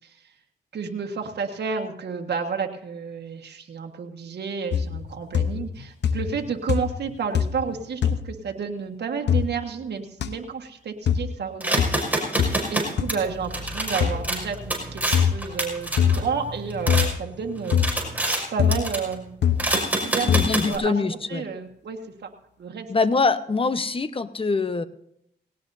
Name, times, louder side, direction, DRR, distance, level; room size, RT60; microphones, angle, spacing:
voice 1, 0.7-12.2 12.7-17.8 18.5-19.4 20.0-22.3 22.6-22.9, right 5 dB, 70° right, 3 dB, 1.6 m, -31 dB
sound 1, 4.7-5.1 5.3-5.8 6.0-6.4 6.7-7.1 7.3-7.7 8.0-8.2 9.3-9.5 10.2-10.3 11.1-11.3 11.8-12.0 12.4-12.6 13.0-13.1 14.0-14.2 15.1-15.4 16.0-16.3 16.9-17.2 17.7-17.9 18.6-18.9 19.4-19.7 20.3-20.5, left 8 dB, 80° left, 1.0 m, -22 dB
sound 2, 11.6-17.1 17.5-18.4 18.7-19.1 19.6-20.8, right 1 dB, 10° right, 5.4 m, -27 dB
voice 2, 20.2-21.5 22.9-24.8, left 4 dB, 30° left, 11 dB, 1.0 m, -24 dB
19.0 x 17.5 x 2.7 m, 0.74 s
cardioid pair, 70°, 18 cm